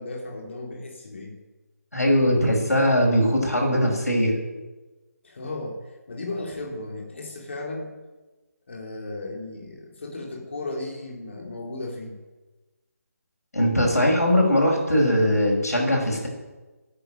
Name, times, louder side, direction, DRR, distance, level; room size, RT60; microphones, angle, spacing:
voice 1, 0.0-1.3 5.2-8.0 8.7-12.2, left 2 dB, 45° left, 0 dB, 3.3 m, -35 dB
voice 2, 1.9-4.4 13.5-16.3, equal, 70° left, -1 dB, 6.1 m, -20 dB
14.5 x 10.5 x 9.1 m, 1.2 s
figure-of-eight pair, 150°, 9 cm